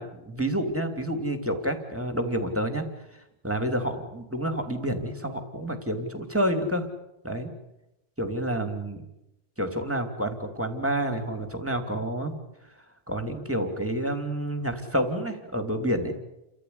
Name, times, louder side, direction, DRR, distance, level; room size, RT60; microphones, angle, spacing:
voice 1, 0.0-2.9 3.4-6.9 7.2-7.5 8.2-9.0 9.6-12.3 13.1-16.2, right 1 dB, 10° right, 6 dB, 2.9 m, -29 dB
30.0 x 14.0 x 9.5 m, 0.88 s
omnidirectional pair, 1.2 m